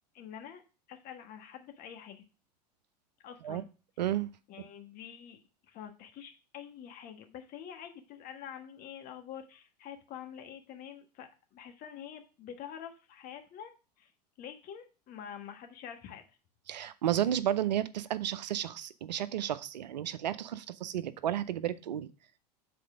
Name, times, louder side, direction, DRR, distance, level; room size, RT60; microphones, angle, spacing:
voice 1, 0.1-0.6 0.9-2.2 3.2-3.7 4.5-13.7 14.0-14.1 14.4-16.4, left 9 dB, 45° left, 6 dB, 1.5 m, -46 dB
voice 2, 4.0-4.3 16.7-22.1, right 11 dB, 80° right, 15 dB, 0.6 m, -32 dB
7.6 x 4.3 x 4.9 m, 0.33 s
hypercardioid pair, 95°, 21 cm